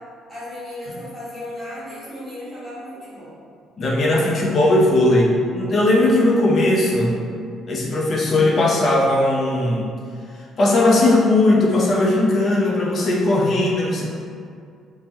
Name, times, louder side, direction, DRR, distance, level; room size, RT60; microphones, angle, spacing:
voice 1, 0.3-3.3, left 1 dB, ahead, -13 dB, 1.2 m, -35 dB
voice 2, 3.8-7.2 7.7-9.9 10.6-14.0, left 2 dB, 35° left, -3 dB, 0.4 m, -18 dB
3.5 x 2.1 x 2.8 m, 2.3 s
cardioid pair, 160°, 0 cm